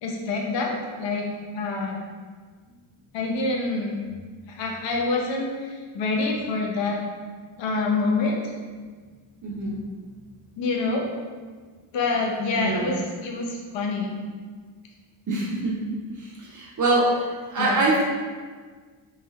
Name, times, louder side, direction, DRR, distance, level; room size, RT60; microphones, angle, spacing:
voice 1, 0.0-1.3 1.5-2.0 3.1-4.0 4.5-7.0 7.6-8.5 10.6-11.1 11.9-14.2 17.6-17.9, left 3 dB, 65° left, 0 dB, 0.6 m, -26 dB
voice 2, 9.4-9.8 12.5-12.9 15.3-15.8 16.2-18.0, right 2 dB, 40° right, -4 dB, 0.4 m, -24 dB
3.2 x 3.0 x 2.2 m, 1.5 s
wide cardioid pair, 180°, 48 cm